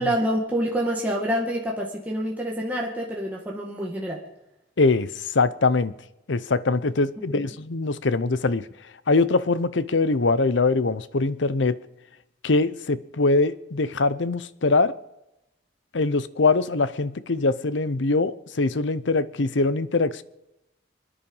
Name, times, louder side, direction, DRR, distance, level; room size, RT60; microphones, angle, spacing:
voice 1, 0.0-4.2 7.3-7.5, equal, 10° right, 1.9 m, -27 dB
voice 2, 4.8-5.9 6.3-8.7 9.1-11.8 12.4-14.9 15.9-20.2, left 3 dB, 70° left, 0.8 m, -22 dB
25.5 x 10.0 x 5.5 m
head